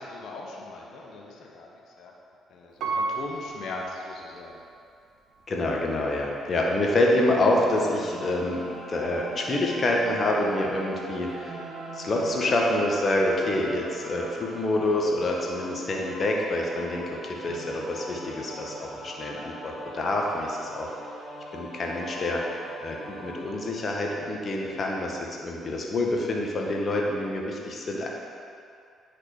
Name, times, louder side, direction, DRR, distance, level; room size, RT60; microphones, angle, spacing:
voice 1, 0.0-2.1 2.5-4.6, left 2 dB, 60° left, -1 dB, 1.1 m, -39 dB
Piano, 2.8-4.8 5.3-5.4, right 3 dB, 65° right, 1.1 m, -33 dB
voice 2, 5.5-11.6 11.9-20.9 21.5-22.4 22.8-28.1, left 1 dB, 45° left, -1 dB, 1.5 m, -27 dB
sound 1, 7.4-23.5, right 1 dB, 50° right, 2.0 m, -41 dB
10.0 x 4.2 x 5.0 m, 2.4 s
hypercardioid pair, 45°, 0 cm